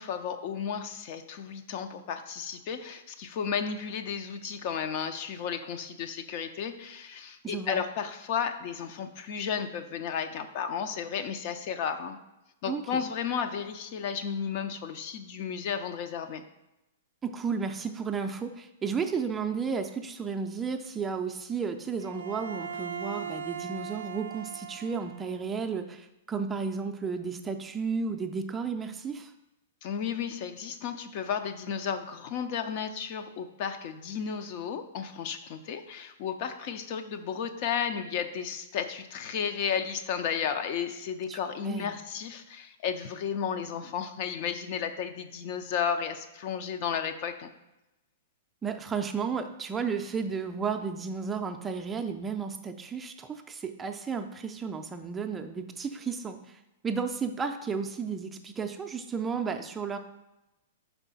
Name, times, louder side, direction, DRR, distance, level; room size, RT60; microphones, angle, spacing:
voice 1, 0.0-12.2 12.6-16.4 29.8-47.5, left 7 dB, 50° left, 8 dB, 0.5 m, -33 dB
voice 2, 7.4-7.8 12.7-13.0 17.2-29.3 41.3-41.4 41.6-42.0 48.6-60.0, right 5 dB, 15° right, 5 dB, 0.4 m, -33 dB
Bowed string instrument, 22.0-25.4, right 7 dB, 80° right, 0.4 m, -39 dB
5.5 x 4.5 x 4.0 m, 0.95 s
hypercardioid pair, 120°, 0 cm